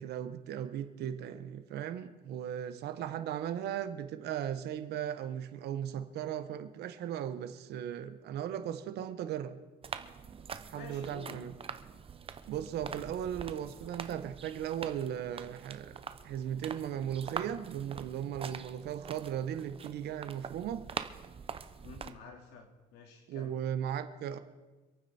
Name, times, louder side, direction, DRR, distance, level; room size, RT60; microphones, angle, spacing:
voice 1, 0.0-9.6 10.7-11.5 12.5-20.8 23.3-24.4, right 10 dB, 75° right, 10 dB, 1.2 m, -37 dB
sound 1, 9.8-22.1, right 6 dB, 35° right, 0.8 m, -44 dB
voice 2, 10.7-11.5 21.8-23.6, left 5 dB, 90° left, 3 dB, 2.7 m, -50 dB
26.5 x 9.1 x 4.4 m, 1.2 s
cardioid pair, 110°, 17 cm